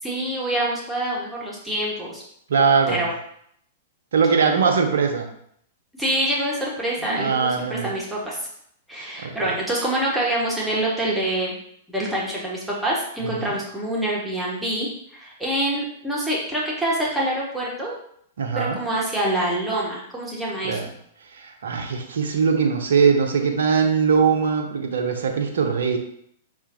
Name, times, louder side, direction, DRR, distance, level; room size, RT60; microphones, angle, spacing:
voice 1, 0.0-2.2 2.9-3.1 6.0-8.4 8.9-11.6 11.9-14.9 15.1-18.0 18.5-20.8, right 1 dB, 5° right, -6 dB, 1.1 m, -26 dB
voice 2, 2.5-3.1 4.1-5.3 7.1-7.9 9.2-9.5 13.2-13.6 18.4-18.8 20.6-20.9 21.3-26.0, right 5 dB, 65° right, 4 dB, 0.6 m, -21 dB
5.5 x 2.5 x 2.6 m, 0.69 s
figure-of-eight pair, 105°, 0 cm